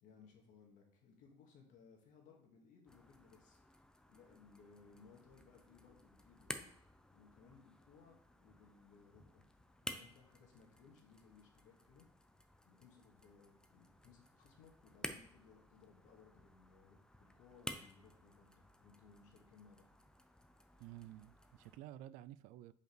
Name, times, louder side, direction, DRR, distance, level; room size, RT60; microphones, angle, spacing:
voice 1, 0.0-3.7 4.1-6.8 7.1-9.5 9.9-12.1 12.6-19.9, left 5 dB, 65° left, 1.9 m, -64 dB
sound 1, 2.9-21.8, left 1 dB, 5° left, 0.6 m, -54 dB
voice 2, 20.8-22.7, right 13 dB, 70° right, 0.4 m, -52 dB
5.3 x 4.9 x 4.6 m
supercardioid pair, 110°, 14 cm